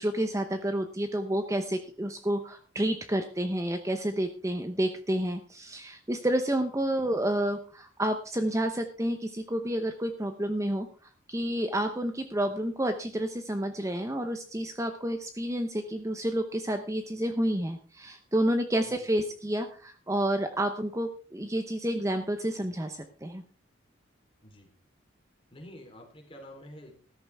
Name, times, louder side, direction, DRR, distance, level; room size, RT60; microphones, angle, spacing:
voice 1, 0.0-23.4, right 1 dB, 15° right, 7 dB, 0.8 m, -30 dB
voice 2, 25.5-26.9, left 1 dB, 25° left, 2 dB, 3.6 m, -48 dB
14.0 x 13.5 x 3.5 m, 0.39 s
head